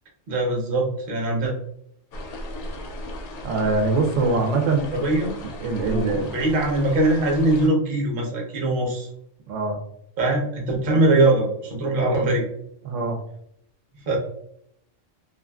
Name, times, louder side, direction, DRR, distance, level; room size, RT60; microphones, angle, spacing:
voice 1, 0.3-1.5 4.9-5.3 5.8-9.1 10.2-12.5 14.1-14.2, right 2 dB, 50° right, -1 dB, 0.9 m, -22 dB
sound 1, 2.1-7.7, left 1 dB, 60° left, 0.6 m, -36 dB
voice 2, 3.4-4.9 5.4-6.3 9.5-9.8 12.8-13.2, right 3 dB, 80° right, 3 dB, 1.0 m, -23 dB
2.5 x 2.5 x 2.2 m, 0.69 s
omnidirectional pair, 1.3 m